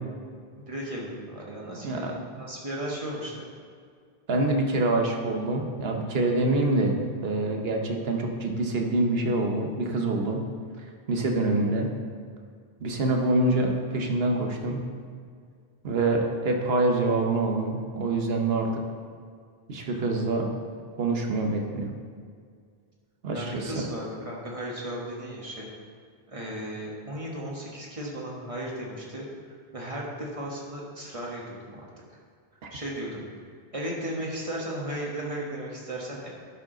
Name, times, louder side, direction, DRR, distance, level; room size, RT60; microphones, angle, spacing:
voice 1, 0.6-3.5 23.3-25.7 26.3-29.3 29.7-31.9 32.7-33.3 33.7-36.3, right 1 dB, 35° right, -3 dB, 1.4 m, -35 dB
voice 2, 4.3-10.4 11.1-11.9 12.8-14.9 15.8-18.8 19.7-20.5 21.0-21.9 23.2-23.9 32.6-32.7, right 2 dB, 75° right, 2 dB, 1.2 m, -26 dB
12.0 x 4.9 x 3.8 m, 2.1 s
omnidirectional pair, 1.0 m